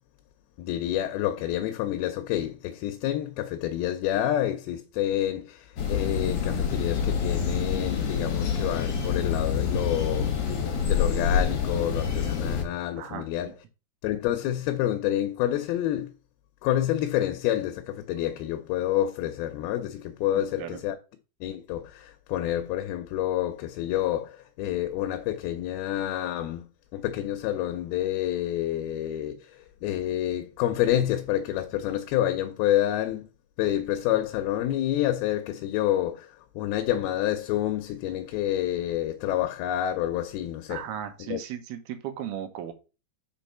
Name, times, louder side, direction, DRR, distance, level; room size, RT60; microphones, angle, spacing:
voice 1, 0.6-13.5 14.0-16.1 16.6-21.0 21.4-26.7 26.9-33.3 33.6-40.8 41.2-41.4, left 12 dB, 80° left, 2.6 m, -28 dB
sound 1, 5.8-12.6, left 6 dB, 55° left, 1.8 m, -27 dB
voice 2, 13.0-13.5 20.4-20.8 40.7-42.7, right 10 dB, 80° right, 2.9 m, -36 dB
6.0 x 4.6 x 5.5 m
omnidirectional pair, 4.5 m